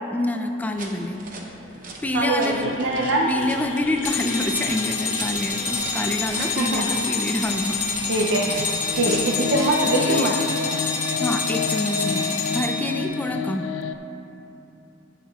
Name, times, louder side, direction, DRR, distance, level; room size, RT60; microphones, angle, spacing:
voice 1, 0.1-1.2 2.0-2.7 3.3-8.1 9.8-10.3 11.2-13.7, left 1 dB, 10° left, 4 dB, 0.4 m, -27 dB
sound 1, 0.6-9.9, right 3 dB, 45° right, 0.8 m, -41 dB
sound 2, 2.0-14.0, left 6 dB, 85° left, 0.3 m, -32 dB
voice 2, 2.1-3.3 6.4-6.9 8.1-8.5 9.0-10.3, right 2 dB, 80° right, -1 dB, 0.6 m, -23 dB
sound 3, 4.0-13.1, left 4 dB, 45° left, 1.1 m, -27 dB
16.0 x 5.7 x 2.4 m, 2.9 s
head